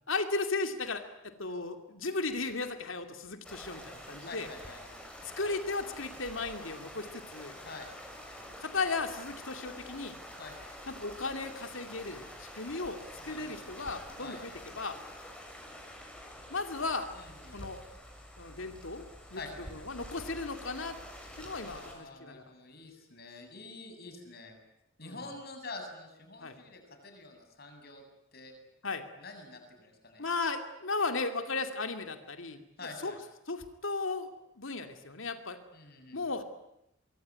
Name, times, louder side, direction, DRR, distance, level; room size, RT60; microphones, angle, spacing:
voice 1, 0.1-4.5 5.2-7.5 8.6-10.2 10.9-15.0 16.5-17.1 17.5-17.8 18.4-19.4 19.7-21.0 21.4-22.4 25.0-25.2 26.4-26.6 28.8-29.0 30.2-32.6 33.0-33.2 33.5-34.3 34.6-35.6 36.1-36.4, left 3 dB, 70° left, 7 dB, 2.6 m, -35 dB
sound 1, 3.4-21.9, equal, 5° left, 6.3 m, -47 dB
voice 2, 4.2-5.0 7.6-7.9 10.4-10.7 13.2-13.7 14.2-14.4 17.1-17.6 19.3-19.9 21.6-24.6 25.0-28.0 28.3-28.5 29.2-30.3 32.8-33.2 35.7-36.2, left 3 dB, 50° left, 5 dB, 7.7 m, -47 dB
25.0 x 24.5 x 9.5 m, 0.85 s
head